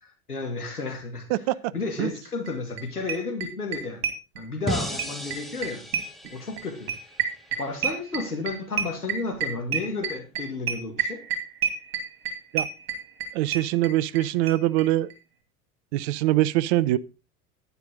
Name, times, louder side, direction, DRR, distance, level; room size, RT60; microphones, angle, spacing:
voice 1, 0.0-1.3 1.7-4.0 4.4-5.8 6.3-6.9 7.6-11.2, left 3 dB, 85° left, 2.3 m, -32 dB
voice 2, 1.3-1.7 2.0-2.1 12.5-12.7 13.3-15.1 15.9-17.0, right 15 dB, 45° right, 0.6 m, -23 dB
sound 1, 2.5-2.6 2.8-2.9 3.1-4.7 5.0-14.2 14.5-14.6 14.8-14.9 15.1-15.2, right 7 dB, 65° right, 2.5 m, -28 dB
sound 2, 4.7-7.8, equal, ahead, 1.5 m, -35 dB
11.5 x 9.3 x 3.7 m
figure-of-eight pair, 80°, 44 cm